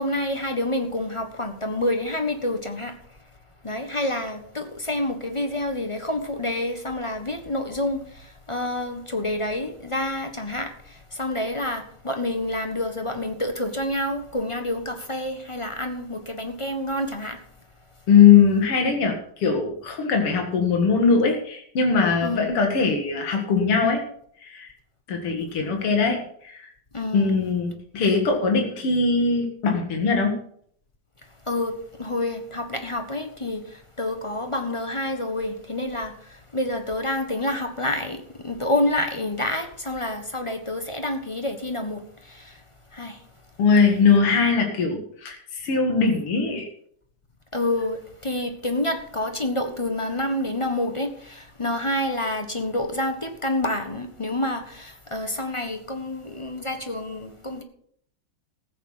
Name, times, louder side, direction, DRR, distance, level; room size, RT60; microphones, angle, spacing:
voice 1, 0.0-3.2 3.6-17.4 22.2-22.5 26.9-27.5 31.4-31.7 32.0-42.6 42.9-43.3 47.5-57.6, left 1 dB, 20° left, 1.1 m, -28 dB
voice 2, 18.1-24.0 24.4-24.7 25.1-26.7 27.1-30.4 43.6-46.7, left 5 dB, 90° left, 2.8 m, -21 dB
15.0 x 8.4 x 5.7 m
omnidirectional pair, 2.4 m